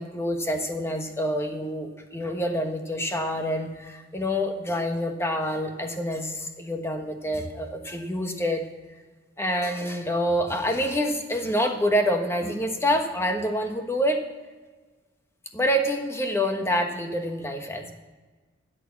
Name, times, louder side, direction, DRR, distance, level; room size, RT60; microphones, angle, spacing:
voice 1, 0.0-8.6 9.4-14.2 15.5-17.9, equal, 15° left, 4 dB, 1.3 m, -27 dB
12.5 x 8.4 x 5.9 m, 1.3 s
head